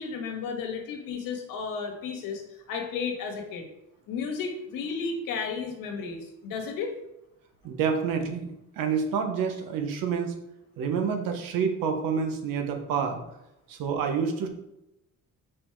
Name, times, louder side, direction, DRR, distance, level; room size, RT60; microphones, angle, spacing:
voice 1, 0.0-2.4 2.7-3.7 4.1-6.9, left 5 dB, 80° left, 3 dB, 1.6 m, -33 dB
voice 2, 7.6-8.5 8.8-10.3 10.8-13.2 13.7-14.5, right 6 dB, 80° right, 5 dB, 1.2 m, -28 dB
6.2 x 4.4 x 4.6 m, 0.88 s
cardioid pair, 180°, 33 cm